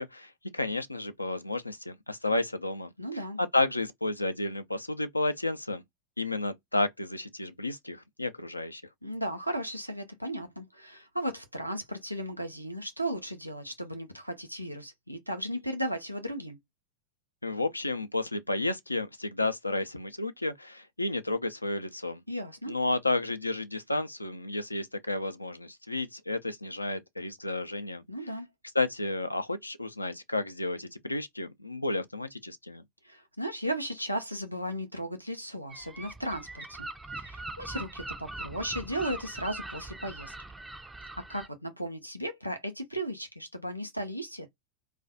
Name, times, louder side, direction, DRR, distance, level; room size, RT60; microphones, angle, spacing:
voice 1, 0.0-2.9 3.4-5.8 6.2-8.8 17.4-22.2 22.7-28.0 28.7-32.8, left 2 dB, 85° left, 0.4 m, -31 dB
voice 2, 3.0-3.4 9.0-16.6 22.3-22.7 28.1-28.5 33.0-36.9 37.1-40.3 41.3-44.5, equal, 90° right, 0.5 m, -35 dB
Gull seagull, 35.7-41.5, right 2 dB, 10° right, 0.4 m, -41 dB
2.3 x 2.2 x 2.5 m
figure-of-eight pair, 90°, 0 cm